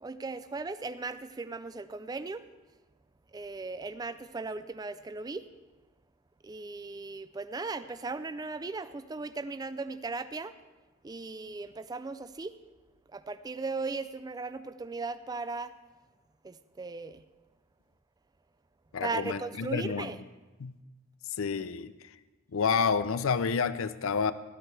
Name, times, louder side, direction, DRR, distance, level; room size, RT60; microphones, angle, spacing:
voice 1, 0.0-2.5 3.3-5.5 6.4-10.6 11.0-12.6 13.1-15.7 16.4-17.2 19.0-20.2, right 3 dB, 20° right, 13 dB, 0.3 m, -37 dB
voice 2, 18.9-20.1 20.6-20.8 21.4-21.9 22.5-24.3, left 5 dB, 70° left, 14 dB, 0.5 m, -29 dB
16.5 x 11.5 x 3.3 m, 1.2 s
head